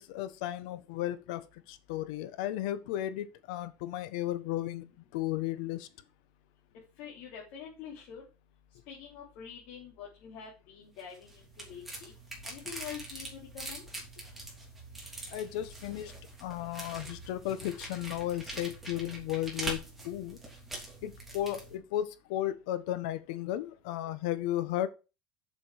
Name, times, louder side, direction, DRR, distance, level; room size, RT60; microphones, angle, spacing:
voice 1, 0.0-5.9 15.3-16.1 16.4-20.4 21.0-24.9, left 13 dB, 75° left, 1.2 m, -34 dB
voice 2, 7.0-8.2 8.9-12.1 12.4-13.9, left 8 dB, 55° left, 3.4 m, -46 dB
sound 1, 11.0-21.8, right 1 dB, 5° right, 3.1 m, -43 dB
7.3 x 6.9 x 5.0 m
cardioid pair, 160°, 4 cm